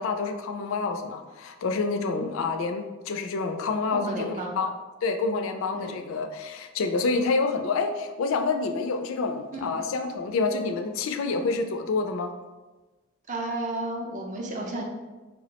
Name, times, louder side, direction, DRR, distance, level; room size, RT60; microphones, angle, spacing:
voice 1, 0.0-4.7 5.0-12.3, left 4 dB, 65° left, 6 dB, 0.3 m, -28 dB
voice 2, 3.9-4.6 5.7-6.0 9.5-9.7 13.3-14.8, right 2 dB, 35° right, 1 dB, 0.5 m, -33 dB
4.3 x 2.0 x 2.8 m, 1.2 s
head